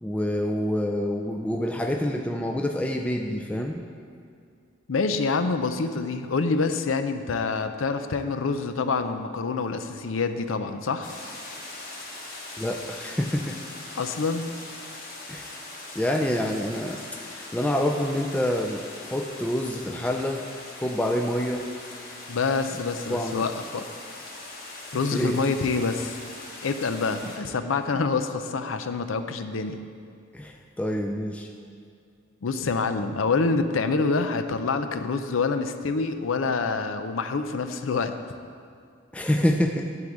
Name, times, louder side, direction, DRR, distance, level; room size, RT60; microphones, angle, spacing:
voice 1, 0.0-3.9 12.6-13.6 15.3-15.5 16.0-20.5 20.8-21.7 23.1-23.4 25.1-25.4 30.3-31.5 39.1-39.9, left 1 dB, 5° left, 2 dB, 0.4 m, -27 dB
voice 2, 4.9-11.1 14.0-14.5 22.3-23.8 24.9-26.2 26.6-29.8 32.4-38.1, left 4 dB, 85° left, 9 dB, 0.5 m, -26 dB
sound 1, 11.0-27.4, left 2 dB, 50° left, 1.7 m, -41 dB
11.0 x 3.8 x 7.3 m, 2.3 s
head